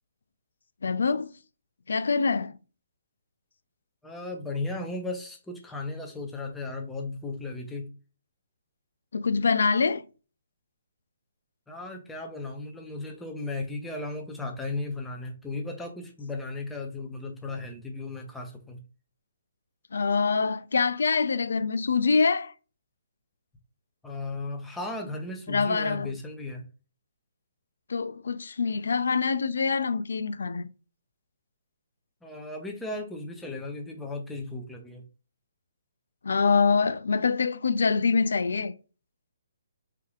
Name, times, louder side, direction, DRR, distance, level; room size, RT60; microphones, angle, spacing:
voice 1, 0.8-1.3 1.9-2.5 9.1-10.0 19.9-22.5 25.5-26.1 27.9-30.7 36.2-38.7, left 5 dB, 75° left, 0.3 m, -25 dB
voice 2, 4.0-7.9 11.7-18.8 24.0-26.6 32.2-35.0, left 2 dB, 5° left, 0.8 m, -36 dB
4.8 x 2.8 x 2.4 m
hypercardioid pair, 145°, 0 cm